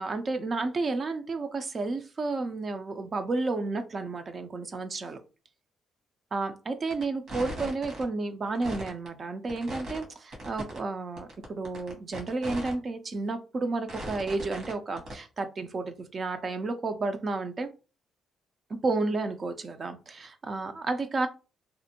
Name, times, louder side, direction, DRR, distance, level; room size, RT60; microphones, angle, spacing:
voice 1, 0.0-5.2 6.3-17.7 18.7-21.3, right 3 dB, 40° right, 8 dB, 0.3 m, -31 dB
sound 1, 6.9-7.0 7.3-8.0 8.5-9.1 9.5-10.0 10.3-10.8 11.2-12.7 13.1-13.2 13.9-14.7 15.0-15.1, right 1 dB, 65° right, 1.2 m, -38 dB
2.5 x 2.1 x 2.8 m, 0.32 s
cardioid pair, 90°, 0 cm